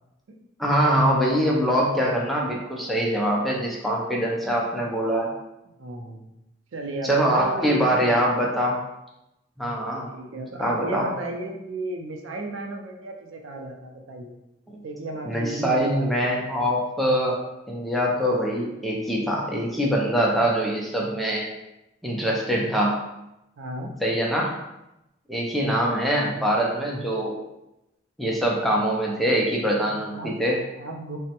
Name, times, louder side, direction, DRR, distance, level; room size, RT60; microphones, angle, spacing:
voice 1, 0.6-5.3 7.0-8.8 9.6-10.1 10.6-11.1 14.7-14.8 15.2-21.4 22.0-23.0 24.0-24.5 25.3-27.3 28.2-30.6, equal, ahead, -3 dB, 0.4 m, -23 dB
voice 2, 5.8-6.2 6.7-8.5 10.1-14.4 14.8-16.7 23.6-23.9 29.7-30.3 30.8-31.2, right 2 dB, 90° right, 2 dB, 0.4 m, -34 dB
3.3 x 2.0 x 2.8 m, 0.90 s
head